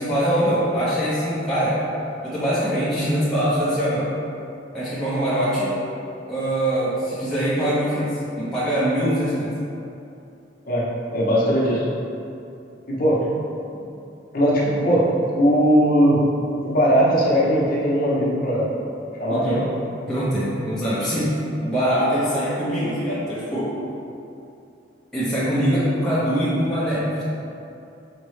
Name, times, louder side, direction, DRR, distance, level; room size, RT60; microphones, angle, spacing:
voice 1, 0.0-1.8 2.2-4.1 4.7-5.7 6.3-8.1 8.4-9.5 19.3-19.6 20.1-21.3 21.6-23.7 25.1-27.2, equal, 5° left, -12 dB, 0.6 m, -23 dB
voice 2, 10.7-11.8 12.9-13.3 14.3-16.2 16.6-18.7 19.2-19.7, equal, 50° left, -6 dB, 0.8 m, -19 dB
5.0 x 2.0 x 3.1 m, 2.7 s
head